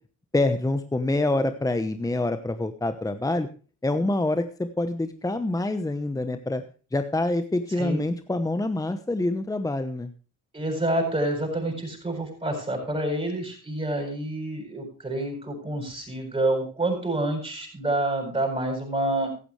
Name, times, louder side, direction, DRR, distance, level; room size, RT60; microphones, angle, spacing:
voice 1, 0.3-3.5 3.8-6.6 6.9-10.1, left 2 dB, 10° left, 9 dB, 1.0 m, -26 dB
voice 2, 10.5-19.3, right 1 dB, 20° right, 1 dB, 7.6 m, -28 dB
15.5 x 12.0 x 3.3 m, 0.36 s
cardioid pair, 90°, 30 cm